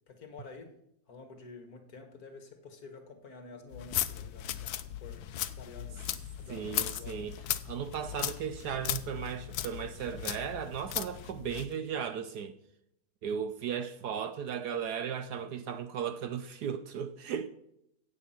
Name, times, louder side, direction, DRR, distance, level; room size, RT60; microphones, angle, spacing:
voice 1, 0.1-0.7 1.1-4.8 5.0-5.3 5.6-6.0 6.4-7.3, left 3 dB, 50° left, 2.0 m, -49 dB
sound 1, 3.7-11.7, left 11 dB, 85° left, 1.5 m, -37 dB
voice 2, 6.5-7.4 7.6-12.5 13.2-17.5, right 8 dB, 65° right, 1.1 m, -36 dB
16.5 x 8.2 x 5.8 m
omnidirectional pair, 2.0 m